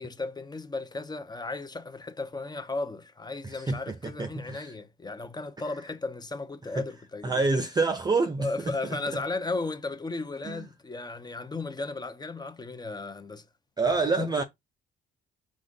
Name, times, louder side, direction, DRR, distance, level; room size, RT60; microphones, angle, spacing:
voice 1, 0.0-7.5 8.4-13.4 13.9-14.4, left 3 dB, 20° left, 0.7 m, -35 dB
voice 2, 3.4-4.7 6.7-6.8 7.2-8.8 10.5-10.7 13.8-14.4, right 3 dB, 20° right, 0.4 m, -27 dB
4.9 x 2.5 x 3.8 m
cardioid pair, 90°, 20 cm